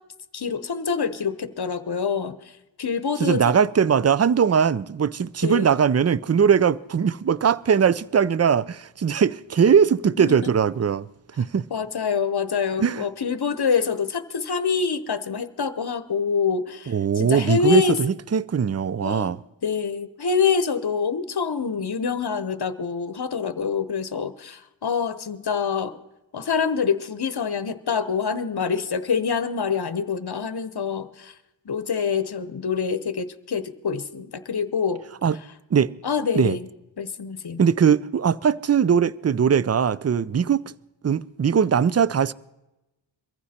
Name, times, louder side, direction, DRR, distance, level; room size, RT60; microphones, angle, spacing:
voice 1, 0.3-2.4 2.8-3.5 5.4-5.7 10.3-10.5 11.7-18.0 19.0-26.0 26.3-31.3 31.7-35.0 36.0-36.7 37.0-37.6, left 6 dB, 55° left, 0.9 m, -26 dB
voice 2, 3.2-11.1 11.4-11.7 12.8-13.0 16.9-19.4 35.2-35.4 35.7-35.9 36.3-36.6 37.6-40.6 41.0-42.3, right 7 dB, 35° right, 0.4 m, -20 dB
23.0 x 14.5 x 4.3 m
wide cardioid pair, 45°, 46 cm